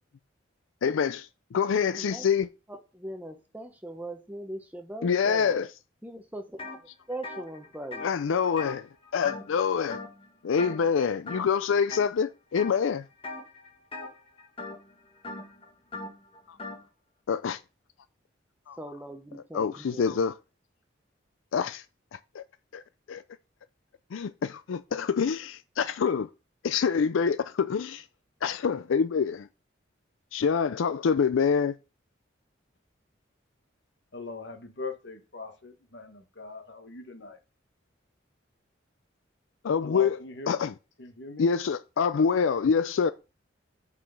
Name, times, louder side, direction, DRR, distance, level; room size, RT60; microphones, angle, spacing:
voice 1, 0.8-2.5 5.0-5.7 8.0-8.9 9.1-10.0 10.4-13.0 16.5-16.6 17.3-17.6 18.7-18.8 19.5-20.3 21.5-21.8 22.3-22.4 22.7-22.8 23.1-23.2 24.1-26.3 26.6-28.0 28.4-29.5 30.3-31.8 39.6-40.2 40.5-40.7 41.4-43.1, left 6 dB, 85° left, 0.4 m, -26 dB
voice 2, 2.0-2.3 2.7-5.6 6.0-6.8 7.1-8.1 18.8-20.2, right 1 dB, 10° right, 0.9 m, -40 dB
sound 1, 6.6-6.8 7.1-9.6 9.9-10.3 10.6-10.9 11.3-12.1 12.6-12.9 13.2-16.8, left 3 dB, 25° left, 1.5 m, -40 dB
voice 3, 34.1-37.4 39.8-40.6 41.0-41.5, left 3 dB, 60° left, 1.3 m, -40 dB
5.6 x 4.9 x 6.3 m
head